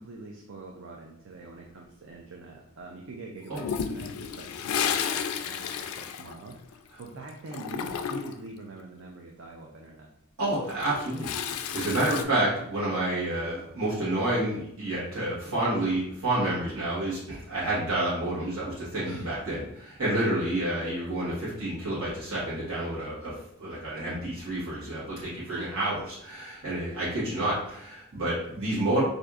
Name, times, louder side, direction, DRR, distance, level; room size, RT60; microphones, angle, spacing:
voice 1, 0.0-10.1 19.0-19.3 24.0-24.1 25.5-25.8, right 3 dB, 60° right, 0 dB, 0.4 m, -44 dB
Toilet flush, 3.5-7.0 7.3-8.5 10.5-12.2, left 7 dB, 80° left, 0.3 m, -32 dB
voice 2, 10.4-29.0, right 1 dB, 75° right, -9 dB, 1.3 m, -29 dB
4.4 x 2.6 x 2.4 m, 0.75 s
head